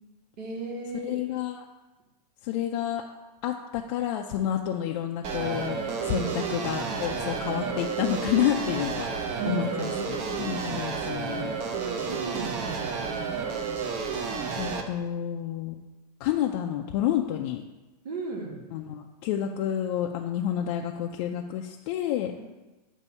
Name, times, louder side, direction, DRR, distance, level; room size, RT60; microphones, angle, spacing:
voice 1, 0.4-1.2 6.1-6.3 9.4-10.2 11.7-13.7 18.0-18.6, right 4 dB, 75° right, -1 dB, 1.8 m, -36 dB
voice 2, 1.0-1.6 2.4-3.0 3.4-11.6 14.6-15.8 16.2-17.6 18.7-22.3, left 10 dB, 45° left, 1 dB, 0.4 m, -29 dB
sound 1, 5.2-14.8, right 5 dB, 35° right, 0.7 m, -31 dB
8.1 x 2.7 x 5.4 m, 1.1 s
hypercardioid pair, 140°, 21 cm